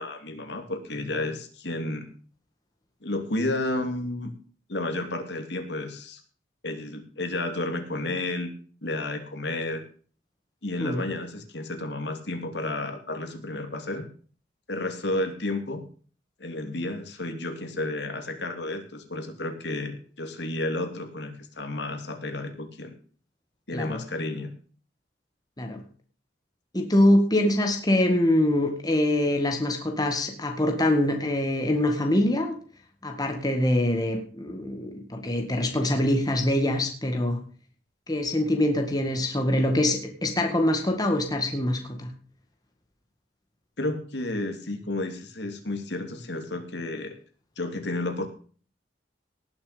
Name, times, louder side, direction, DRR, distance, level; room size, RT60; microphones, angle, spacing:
voice 1, 0.0-2.1 3.0-4.3 4.7-6.2 6.6-8.5 8.8-9.8 10.6-14.1 14.7-15.8 16.4-23.0 23.7-24.5 43.8-47.2 47.6-48.3, left 2 dB, 65° left, 6 dB, 2.8 m, -31 dB
voice 2, 26.7-32.6 33.0-37.4 38.1-42.1, left 1 dB, 20° left, 4 dB, 1.8 m, -24 dB
19.0 x 7.1 x 5.1 m, 0.41 s
head